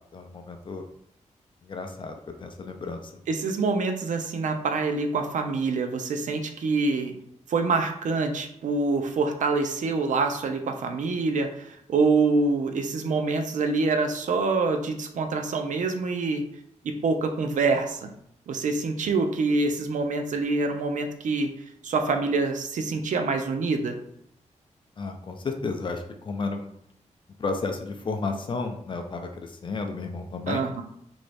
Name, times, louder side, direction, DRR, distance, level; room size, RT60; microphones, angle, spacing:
voice 1, 0.1-0.9 1.6-3.2 25.0-26.7 27.4-30.7, left 3 dB, 40° left, 4 dB, 0.4 m, -32 dB
voice 2, 3.3-7.1 7.5-16.4 16.8-18.1 18.5-21.5 21.8-24.0 30.5-30.8, right 3 dB, 85° right, 5 dB, 0.5 m, -26 dB
3.0 x 2.6 x 3.3 m, 0.73 s
wide cardioid pair, 140°, 13 cm